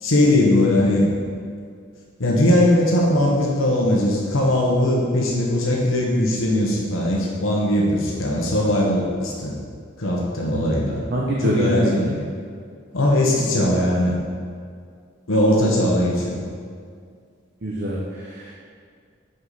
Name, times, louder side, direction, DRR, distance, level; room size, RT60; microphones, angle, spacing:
voice 1, 0.0-1.1 2.2-9.6 10.0-11.0 11.4-12.1 12.9-14.2 15.3-16.4, left 1 dB, 90° left, -3 dB, 1.1 m, -19 dB
voice 2, 0.6-1.0 10.5-10.8 11.1-12.2 17.6-18.5, right 1 dB, 55° right, -4 dB, 0.9 m, -26 dB
7.9 x 5.0 x 4.1 m, 2.1 s
head